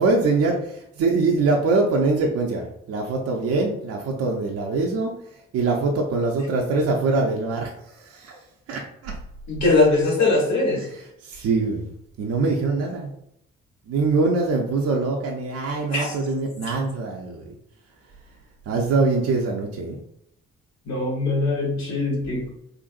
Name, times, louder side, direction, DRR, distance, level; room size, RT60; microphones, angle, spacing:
voice 1, 0.0-5.2 5.5-7.7 8.0-8.4 8.7-9.2 10.8-11.9 12.2-13.1 13.9-17.5 18.7-20.0, right 3 dB, 55° right, 0 dB, 0.6 m, -23 dB
voice 2, 9.5-10.8 15.9-16.1 20.9-22.5, left 2 dB, 60° left, -2 dB, 1.4 m, -21 dB
3.8 x 2.5 x 2.4 m, 0.77 s
hypercardioid pair, 40°, 30 cm